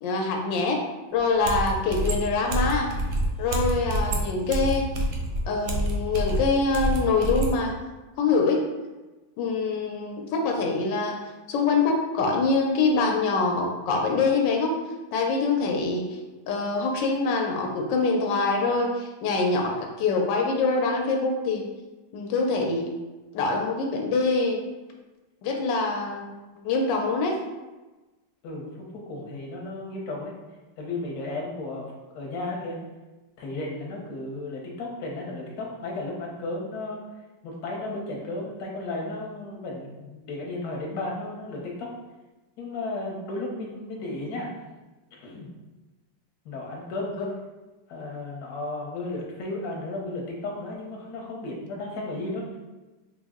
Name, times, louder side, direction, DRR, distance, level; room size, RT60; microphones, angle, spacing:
voice 1, 0.0-0.8 1.1-2.9 3.4-4.9 5.5-7.7 8.2-8.6 9.4-11.2 11.5-14.8 15.1-16.2 16.5-21.7 22.1-22.9 23.3-24.6 25.4-26.4 26.6-27.4 47.2-47.3, left 3 dB, 90° left, 1 dB, 1.3 m, -24 dB
sound 1, 1.2-1.3 1.4-7.6, right 1 dB, 70° right, 0.8 m, -27 dB
voice 2, 28.9-30.3 30.8-32.8 33.4-37.0 37.4-41.9 42.6-44.5 45.1-45.5 46.4-47.1 47.9-52.5, left 2 dB, 65° left, -2 dB, 1.2 m, -34 dB
3.9 x 2.0 x 3.5 m, 1.1 s
omnidirectional pair, 1.9 m